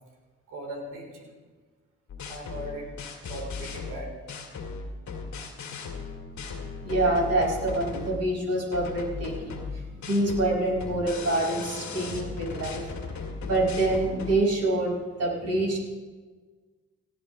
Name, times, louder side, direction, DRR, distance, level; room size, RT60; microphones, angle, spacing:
voice 1, 0.5-1.3 2.3-4.1, right 1 dB, 80° right, 0 dB, 3.8 m, -39 dB
sound 1, 2.1-8.3 8.7-14.4, left 5 dB, 65° left, 2.0 m, -37 dB
voice 2, 6.8-12.9 13.4-15.8, right 2 dB, 55° right, -2 dB, 5.3 m, -26 dB
18.0 x 13.5 x 3.1 m, 1.4 s
supercardioid pair, 50°, 30 cm